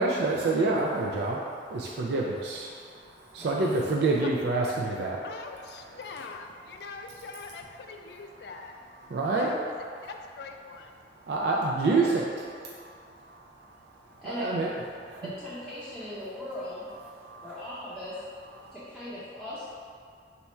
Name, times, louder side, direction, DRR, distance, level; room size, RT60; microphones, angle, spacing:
voice 1, 0.0-5.2 9.0-9.6 11.2-15.3 16.9-17.7 18.5-18.7, right 3 dB, 70° right, -2 dB, 0.4 m, -29 dB
voice 2, 5.2-8.8 9.4-9.6 10.0-11.0, left 4 dB, 65° left, 4 dB, 0.3 m, -43 dB
voice 3, 15.2-16.9 17.4-18.2 18.7-19.7, left 1 dB, 5° right, -12 dB, 0.6 m, -39 dB
4.1 x 2.3 x 4.2 m, 2.2 s
head